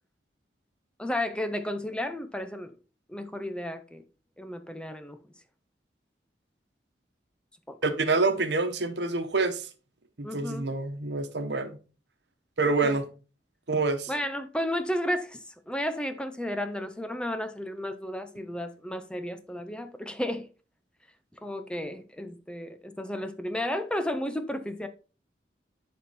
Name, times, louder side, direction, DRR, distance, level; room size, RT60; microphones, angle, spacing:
voice 1, 1.0-2.7 3.1-4.0 4.4-5.2 7.7-7.8 10.2-10.7 12.8-13.0 14.1-20.5 21.4-24.9, left 1 dB, 5° left, 0.5 m, -33 dB
voice 2, 7.8-9.7 10.2-11.8 12.6-13.1 13.7-14.1, right 3 dB, 75° right, 1.1 m, -27 dB
10.5 x 4.2 x 4.2 m
head